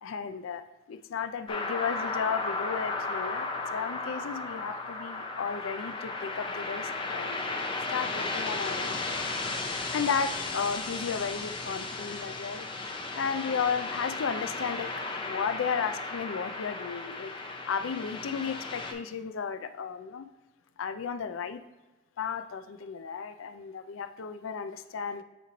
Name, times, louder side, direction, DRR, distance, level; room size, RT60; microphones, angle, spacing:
voice 1, 0.0-7.6 7.9-9.3 9.9-12.7 13.2-14.9 15.2-20.3 20.8-21.6 22.2-25.2, left 6 dB, 80° left, 9 dB, 0.4 m, -34 dB
sound 1, 1.5-18.9, left 3 dB, 25° left, 0.5 m, -35 dB
8.4 x 3.1 x 3.9 m, 1.1 s
head